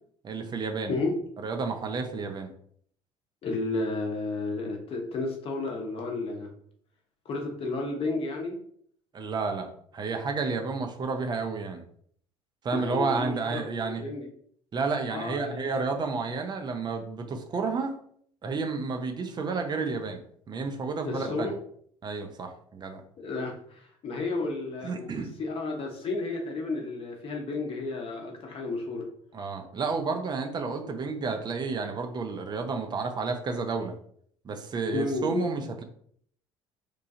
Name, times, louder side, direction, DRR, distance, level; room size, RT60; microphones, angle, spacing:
voice 1, 0.2-0.9 1.4-2.5 9.1-9.7 9.9-11.8 12.6-14.0 14.7-17.9 18.4-20.2 20.5-21.5 22.0-23.0 24.8-25.3 29.3-33.9 34.4-35.8, right 4 dB, 30° right, 5 dB, 0.5 m, -31 dB
voice 2, 3.4-6.5 7.2-8.6 12.7-14.3 15.1-15.9 21.0-21.6 23.2-29.1 34.9-35.5, left 3 dB, 40° left, 2 dB, 0.8 m, -32 dB
3.0 x 2.3 x 2.6 m, 0.62 s
figure-of-eight pair, 55°, 15 cm